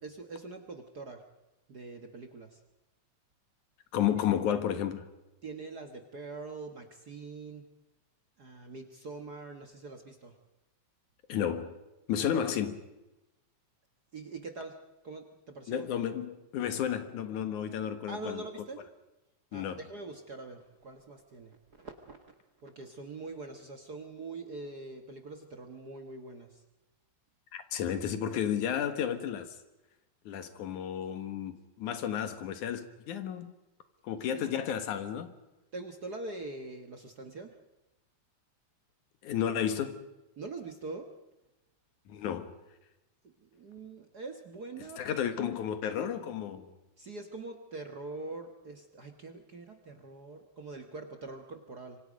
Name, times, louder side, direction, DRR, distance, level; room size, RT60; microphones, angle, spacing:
voice 1, 0.0-1.2 1.7-2.6 4.1-4.2 5.4-7.7 8.4-10.4 12.2-12.4 14.1-14.8 15.0-15.9 18.1-18.8 19.5-22.2 22.6-26.6 34.3-34.5 35.7-37.6 40.4-41.1 43.2-45.4 47.0-52.0, right 3 dB, 45° right, 1.3 m, -43 dB
voice 2, 3.9-5.1 11.3-11.8 12.1-12.8 15.7-18.4 19.5-19.8 27.5-29.6 30.3-33.5 34.0-35.3 39.2-40.1 42.1-42.5 45.0-46.7, left 9 dB, 85° left, 3.0 m, -32 dB
26.5 x 24.5 x 5.1 m
omnidirectional pair, 3.4 m